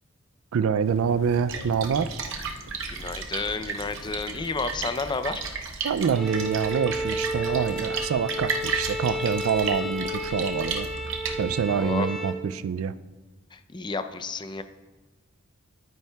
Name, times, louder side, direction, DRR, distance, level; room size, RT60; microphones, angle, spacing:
voice 1, 0.5-2.2 5.8-10.9 11.4-12.9, right 6 dB, 85° right, 15 dB, 0.4 m, -26 dB
sound 1, 0.8-6.1, left 1 dB, 65° left, 0.9 m, -48 dB
Splash splatter, 1.3-11.9, right 5 dB, 65° right, 0.8 m, -34 dB
voice 2, 2.9-5.4 11.7-12.2 13.5-14.6, left 3 dB, 20° left, 10 dB, 0.5 m, -31 dB
Bowed string instrument, 6.1-12.5, equal, ahead, 0.8 m, -32 dB
12.0 x 9.1 x 2.3 m, 1.2 s
head